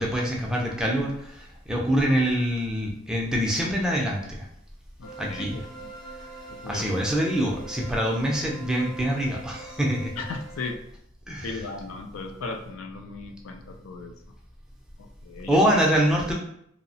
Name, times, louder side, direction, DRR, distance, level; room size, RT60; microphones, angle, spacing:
voice 1, 0.0-4.5 5.2-5.6 6.7-10.1 11.3-11.6 15.5-16.3, equal, 5° right, -2 dB, 0.4 m, -25 dB
voice 2, 5.0-5.9 6.6-6.9 10.2-10.8 11.4-14.1 15.0-15.6, left 3 dB, 80° left, 4 dB, 0.4 m, -37 dB
sound 1, 5.0-10.7, right 3 dB, 50° left, 1.0 m, -43 dB
2.7 x 2.0 x 2.7 m, 0.72 s
head